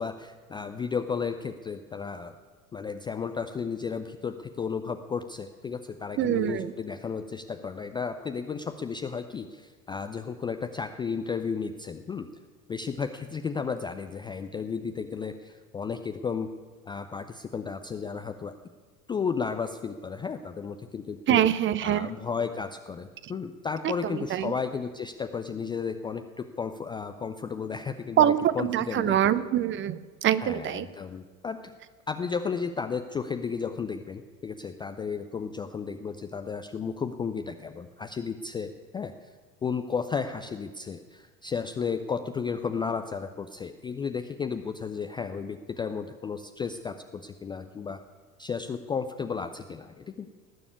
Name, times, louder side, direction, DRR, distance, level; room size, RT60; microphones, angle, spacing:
voice 1, 0.0-2.3 2.7-12.3 12.7-16.5 16.9-18.5 19.1-21.4 21.8-29.4 30.4-31.7 32.1-39.1 39.6-48.0 48.4-50.3, left 5 dB, 10° left, 7 dB, 0.4 m, -33 dB
voice 2, 6.2-6.7 21.3-22.1 23.8-24.5 28.2-30.9, right 11 dB, 25° right, 15 dB, 0.7 m, -24 dB
19.0 x 7.0 x 9.5 m, 1.4 s
figure-of-eight pair, 75°, 44 cm